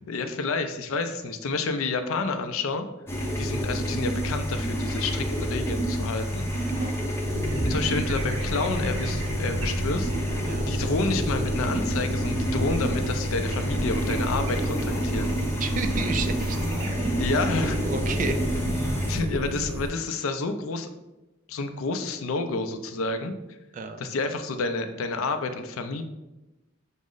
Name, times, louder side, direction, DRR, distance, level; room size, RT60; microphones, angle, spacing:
voice 1, 0.1-2.9 3.4-6.5 7.6-10.1 10.7-15.3 17.2-17.8 19.1-20.9 21.5-23.3 24.0-26.0, left 3 dB, 80° left, 7 dB, 0.4 m, -29 dB
sound 1, 3.1-19.2, equal, 10° left, 0.6 m, -28 dB
voice 2, 6.5-7.0 10.5-10.7 15.6-16.6 17.8-18.4 23.7-24.0, right 4 dB, 40° right, 7 dB, 0.4 m, -31 dB
sound 2, 7.3-19.9, right 1 dB, 75° right, 0.7 m, -32 dB
sound 3, 13.9-19.2, equal, 10° right, 1.2 m, -39 dB
6.1 x 2.1 x 3.8 m, 1.0 s
head